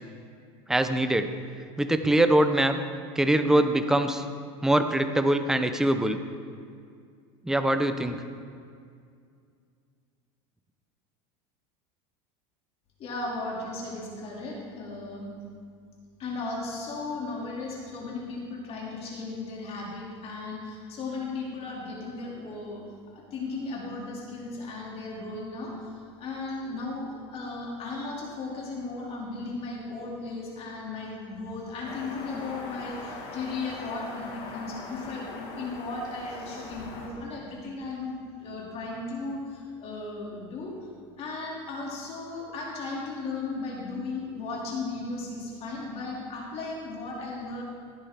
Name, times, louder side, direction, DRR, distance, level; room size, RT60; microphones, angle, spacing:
voice 1, 0.7-1.3 1.8-2.8 3.2-4.2 4.6-6.2 7.4-8.2, right 1 dB, 5° right, 8 dB, 0.6 m, -23 dB
voice 2, 13.0-15.3 16.2-25.9 26.2-40.8 41.2-47.6, left 3 dB, 45° left, -3 dB, 2.6 m, -36 dB
sound 1, 31.8-37.1, left 3 dB, 65° left, 2.4 m, -41 dB
15.5 x 8.6 x 3.6 m, 2.2 s
supercardioid pair, 120°, 15 cm